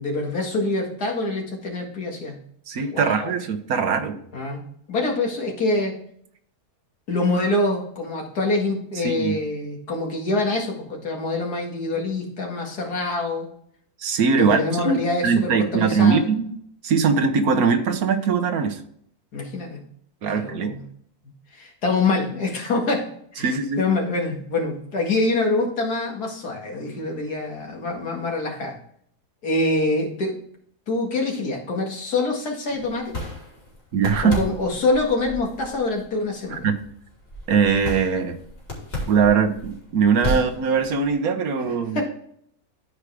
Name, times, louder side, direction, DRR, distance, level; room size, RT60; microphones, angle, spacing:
voice 1, 0.0-2.4 2.9-3.3 4.3-6.0 7.1-13.5 14.3-16.3 19.3-19.9 20.3-20.9 21.2-23.5 23.8-28.7 29.4-30.4 30.9-33.1 34.2-36.7 41.9-42.0, left 2 dB, 80° left, 1 dB, 2.5 m, -25 dB
voice 2, 2.7-4.2 9.0-9.4 14.0-16.6 16.8-18.8 20.2-20.7 23.4-23.8 33.9-34.4 36.5-36.7 37.5-38.4 39.1-42.0, right 5 dB, 70° right, 8 dB, 1.4 m, -21 dB
boxing with bag, 32.7-41.1, left 1 dB, 40° left, 3.1 m, -34 dB
12.5 x 5.0 x 3.4 m, 0.66 s
omnidirectional pair, 1.6 m